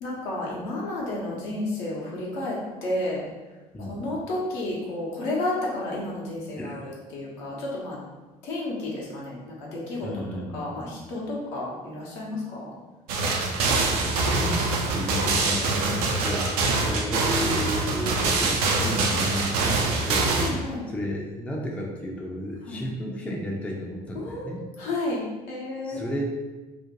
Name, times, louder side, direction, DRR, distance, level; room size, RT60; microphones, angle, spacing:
voice 1, 0.0-3.2 3.8-8.0 8.4-12.7 15.7-16.0 20.4-20.9 22.7-22.8 24.1-26.0, left 2 dB, 65° left, -4 dB, 0.8 m, -32 dB
voice 2, 6.6-6.9 10.0-11.0 13.6-20.6 20.9-24.6 25.8-26.2, equal, 5° left, -2 dB, 0.4 m, -33 dB
sound 1, 13.1-20.5, right 3 dB, 70° right, 0.4 m, -24 dB
2.6 x 2.1 x 2.8 m, 1.2 s
figure-of-eight pair, 55°, 20 cm